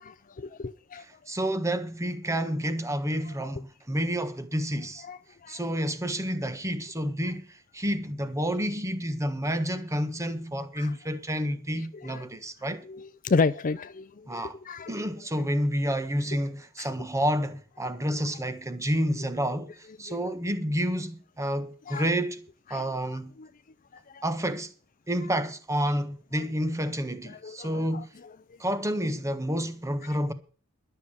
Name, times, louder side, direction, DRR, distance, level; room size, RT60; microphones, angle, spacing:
voice 1, 0.4-1.0 5.0-5.6 10.8-10.9 11.9-12.2 12.9-14.9 16.8-16.9 20.1-20.2 21.9-22.1 22.7-22.8 23.4-23.5 24.1-24.2 27.4-28.0, left 4 dB, 35° left, 0.5 m, -31 dB
voice 2, 1.0-5.1 5.5-12.8 14.3-14.6 14.9-22.4 22.7-23.3 24.2-24.7 25.1-28.1 28.6-30.3, equal, 15° right, 1.3 m, -29 dB
12.0 x 6.7 x 8.7 m
head